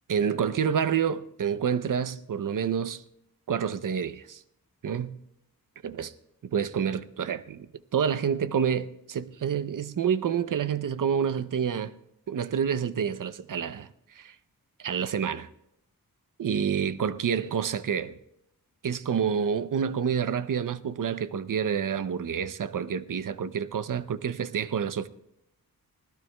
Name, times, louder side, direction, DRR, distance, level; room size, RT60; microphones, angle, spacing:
voice 1, 0.1-3.0 3.5-4.4 4.8-5.2 5.8-6.1 6.4-11.9 12.3-13.9 14.1-14.3 14.8-15.5 16.4-18.2 18.8-25.1, right 7 dB, 60° right, 0.6 m, -28 dB
24.5 x 17.5 x 2.2 m
wide cardioid pair, 100°, 36 cm